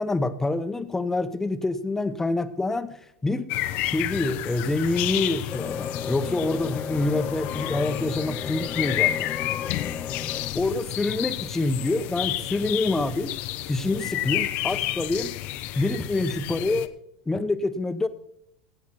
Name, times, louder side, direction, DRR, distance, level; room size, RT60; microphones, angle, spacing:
voice 1, 0.0-3.5 3.8-9.3 10.5-13.4 13.7-15.4 15.7-16.9 17.3-18.1, left 2 dB, 10° left, 11 dB, 1.0 m, -26 dB
sound 1, 3.5-16.9, left 14 dB, 60° left, 0.8 m, -30 dB
sound 2, 5.5-10.5, left 6 dB, 25° left, 0.5 m, -35 dB
16.0 x 8.4 x 4.3 m, 0.73 s
hypercardioid pair, 95°, 3 cm